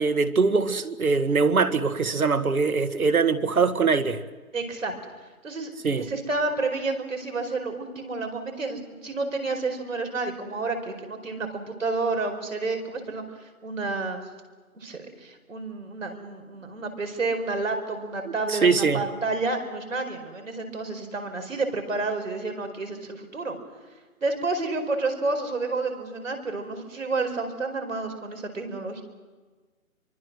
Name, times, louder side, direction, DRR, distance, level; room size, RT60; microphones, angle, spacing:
voice 1, 0.0-4.2 5.8-6.0 18.5-19.0, right 4 dB, 80° right, 10 dB, 1.8 m, -22 dB
voice 2, 4.5-4.9 5.4-5.7 6.1-14.2 14.7-23.6 24.2-29.0, right 3 dB, 60° right, 5 dB, 4.9 m, -30 dB
25.5 x 24.0 x 6.3 m, 1.4 s
hypercardioid pair, 175°, 43 cm